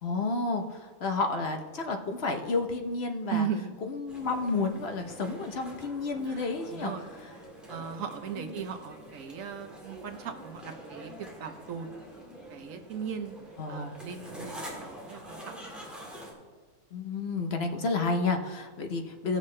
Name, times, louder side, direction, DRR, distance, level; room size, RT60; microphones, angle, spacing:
voice 1, 0.0-3.5 3.9-6.9 8.4-8.5 13.6-13.9 16.9-19.4, left 3 dB, 55° left, 5 dB, 0.9 m, -31 dB
voice 2, 3.3-3.7 6.2-7.0 7.7-11.1 11.4-11.9 12.5-13.4 13.7-16.1, right 7 dB, 70° right, 7 dB, 1.2 m, -37 dB
sound 1, 4.1-16.3, equal, ahead, 1.9 m, -46 dB
17.0 x 6.5 x 3.2 m, 1.4 s
omnidirectional pair, 1.5 m